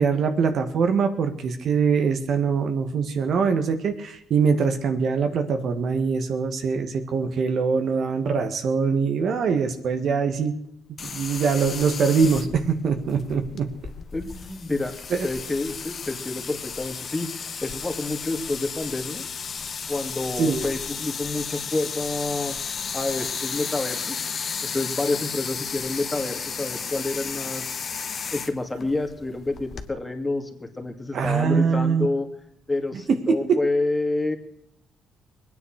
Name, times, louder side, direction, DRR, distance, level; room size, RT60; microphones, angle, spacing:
voice 1, 0.0-10.5 11.0-13.7 15.1-15.3 20.4-20.6 31.1-32.1 33.1-33.6, right 5 dB, 65° right, 7 dB, 1.8 m, -23 dB
sound 1, 11.0-29.9, left 6 dB, 50° left, 1.3 m, -33 dB
voice 2, 14.1-14.9 15.2-19.2 19.9-24.2 24.6-27.7 28.3-32.3 32.7-34.4, left 2 dB, 15° left, 5 dB, 2.5 m, -28 dB
21.0 x 9.6 x 6.5 m, 0.81 s
cardioid pair, 90°, 0 cm